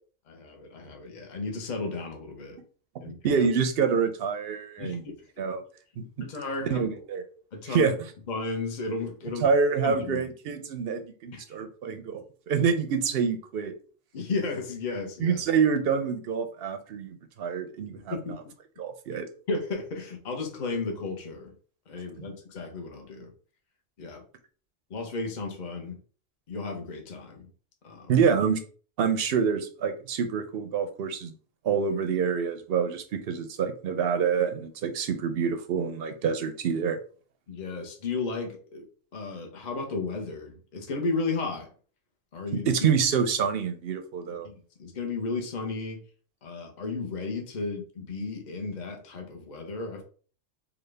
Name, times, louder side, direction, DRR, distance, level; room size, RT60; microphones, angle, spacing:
voice 1, 0.3-2.6 3.0-3.5 4.8-5.2 6.0-6.9 7.5-8.0 8.3-9.5 9.8-10.2 11.3-11.4 12.5-12.7 14.1-15.4 18.1-18.4 19.5-21.5 21.9-23.3 24.0-24.2 24.9-26.0 26.5-27.5 27.8-28.1 37.5-38.8 39.1-41.7 42.3-42.7 44.4-46.0 46.4-50.0, left 3 dB, 40° left, 2 dB, 0.8 m, -34 dB
voice 2, 3.0-5.0 5.4-5.6 6.0-6.3 6.7-7.2 7.7-7.9 9.4-13.7 15.2-18.4 18.8-19.3 22.2-22.3 28.1-28.6 29.0-31.3 31.6-37.0 42.5-44.5, right 6 dB, 60° right, 8 dB, 0.7 m, -27 dB
3.9 x 2.3 x 3.3 m, 0.41 s
omnidirectional pair, 1.3 m